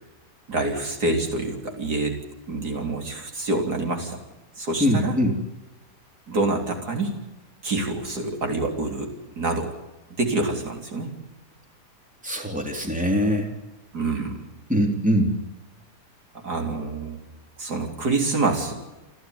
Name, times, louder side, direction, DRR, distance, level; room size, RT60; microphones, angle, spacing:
voice 1, 0.5-2.2 2.5-4.2 4.6-5.2 6.3-7.1 7.6-9.7 10.2-11.1 13.9-14.4 16.3-17.2 17.6-18.7, right 2 dB, 65° right, 3 dB, 4.0 m, -26 dB
voice 2, 4.8-5.4 12.2-13.5 14.7-15.3, equal, 5° right, 2 dB, 3.4 m, -22 dB
29.5 x 12.5 x 9.6 m, 1.1 s
omnidirectional pair, 1.8 m